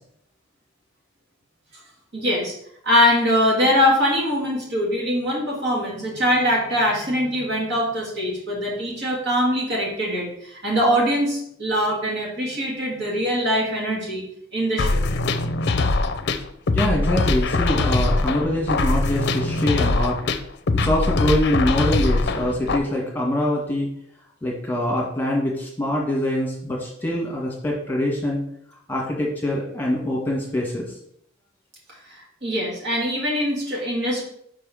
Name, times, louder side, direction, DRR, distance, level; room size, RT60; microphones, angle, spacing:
voice 1, 2.1-2.5 2.8-14.3 14.5-15.0 32.1-34.2, equal, 60° right, -3 dB, 2.8 m, -22 dB
sound 1, 14.8-22.8, left 2 dB, 55° left, 0.6 m, -22 dB
voice 2, 16.7-20.2 20.8-23.9 24.4-28.4 28.9-30.9, left 1 dB, 10° left, -3 dB, 1.6 m, -24 dB
5.2 x 4.9 x 6.2 m, 0.69 s
head